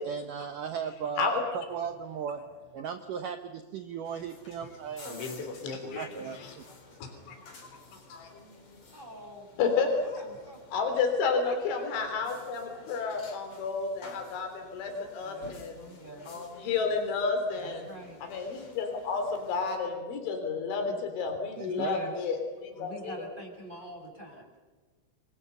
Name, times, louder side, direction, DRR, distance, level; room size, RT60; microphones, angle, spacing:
voice 1, 0.1-2.5 2.7-5.3 6.0-6.6 21.6-22.0, right 7 dB, 75° right, 8 dB, 1.9 m, -36 dB
sound 1, 4.0-19.8, left 3 dB, 35° left, 4.0 m, -48 dB
voice 2, 5.2-6.1 6.3-6.6 7.3-7.4 7.9-8.3 9.6-10.0 10.7-15.8 16.3-17.8 18.2-23.2, left 5 dB, 80° left, 5 dB, 5.9 m, -31 dB
voice 3, 8.9-9.5 10.0-10.6 11.4-11.6 14.9-16.3 17.6-18.2 20.8-21.0 21.6-22.2 22.7-24.5, equal, 10° right, 2 dB, 5.7 m, -44 dB
29.5 x 22.0 x 6.8 m, 1.4 s
omnidirectional pair, 5.3 m